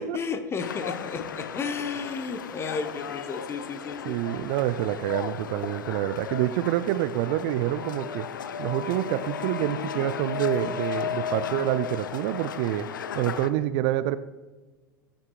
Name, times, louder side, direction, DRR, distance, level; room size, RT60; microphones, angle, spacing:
voice 1, 0.0-4.5, left 5 dB, 25° left, 9 dB, 0.8 m, -33 dB
sound 1, 0.6-13.5, left 8 dB, 70° left, 0.5 m, -35 dB
voice 2, 4.1-8.3 8.6-12.9 13.1-14.2, right 13 dB, 50° right, 14 dB, 0.4 m, -27 dB
14.0 x 7.6 x 2.3 m, 1.2 s
figure-of-eight pair, 85°, 11 cm